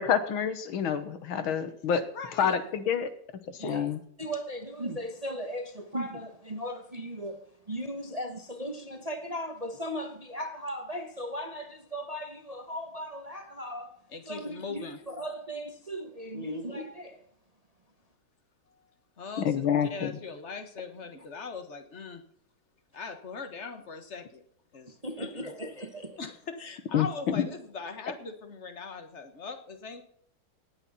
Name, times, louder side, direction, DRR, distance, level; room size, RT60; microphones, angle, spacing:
voice 1, 0.0-2.0 2.4-3.1 3.6-4.0 19.5-20.1 26.9-27.4, left 8 dB, 80° left, 2.0 m, -27 dB
voice 2, 2.1-2.6 14.1-15.0 19.2-22.2 22.9-24.4 24.7-25.5 26.2-30.0, left 4 dB, 35° left, 1.6 m, -40 dB
voice 3, 3.6-14.0 14.3-17.2 25.0-26.2, equal, 25° right, 0.9 m, -37 dB
18.5 x 8.7 x 4.2 m
omnidirectional pair, 2.2 m